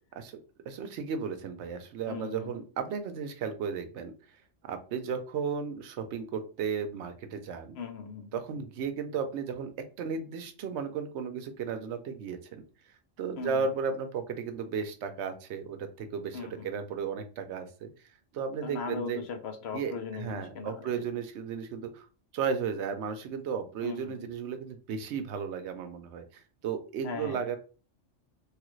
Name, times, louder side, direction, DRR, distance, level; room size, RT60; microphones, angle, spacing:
voice 1, 0.7-4.1 4.6-7.8 8.3-12.6 13.2-17.9 18.3-19.3 19.7-22.1 22.3-27.6, right 6 dB, 70° right, 8 dB, 0.8 m, -34 dB
voice 2, 2.1-2.6 7.8-8.4 13.4-13.6 16.3-16.7 18.6-20.8 23.8-24.3 27.0-27.4, left 5 dB, 65° left, 6 dB, 0.8 m, -39 dB
3.2 x 2.4 x 3.0 m, 0.36 s
omnidirectional pair, 1.3 m